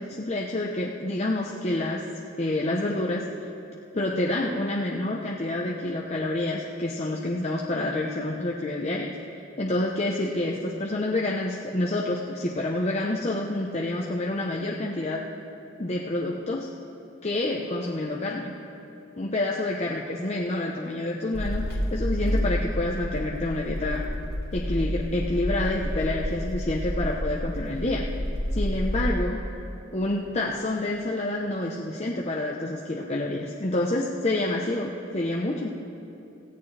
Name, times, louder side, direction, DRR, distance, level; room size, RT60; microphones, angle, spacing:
voice 1, 0.0-2.1 2.4-3.3 3.9-9.2 9.6-15.2 15.8-16.7 17.2-18.6 19.2-24.1 24.5-28.1 28.5-29.5 29.9-35.7, left 2 dB, 35° left, -2 dB, 0.9 m, -28 dB
sound 1, 21.3-29.1, equal, 55° left, 1.8 m, -29 dB
24.5 x 16.0 x 3.4 m, 2.8 s
head